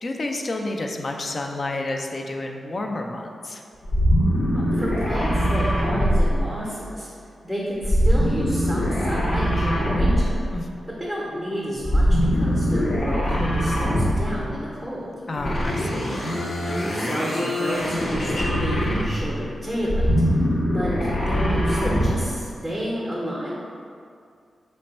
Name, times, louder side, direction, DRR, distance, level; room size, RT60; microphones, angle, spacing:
voice 1, 0.0-3.6 10.5-10.8 15.3-16.1, left 2 dB, 45° left, 2 dB, 0.3 m, -30 dB
sound 1, 3.8-6.9 7.8-10.5 11.8-14.4 15.4-19.3 19.8-22.3, equal, 65° left, 0.7 m, -22 dB
voice 2, 4.5-7.1 7.4-10.4 11.0-15.1 16.6-20.4 20.7-23.5, equal, 5° right, -6 dB, 0.6 m, -30 dB
3.1 x 2.2 x 4.1 m, 2.3 s
cardioid pair, 80°, 0 cm